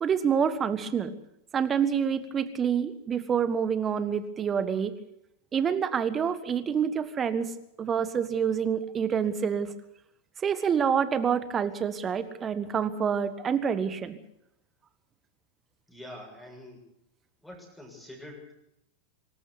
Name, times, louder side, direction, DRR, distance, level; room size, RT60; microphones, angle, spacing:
voice 1, 0.0-1.1 1.5-4.9 5.5-7.5 7.8-9.7 10.4-14.2, right 7 dB, 25° right, 13 dB, 1.5 m, -27 dB
voice 2, 15.9-16.9 17.4-18.5, left 1 dB, ahead, 0 dB, 7.2 m, -45 dB
24.0 x 13.5 x 8.2 m, 0.82 s
figure-of-eight pair, 90°, 0 cm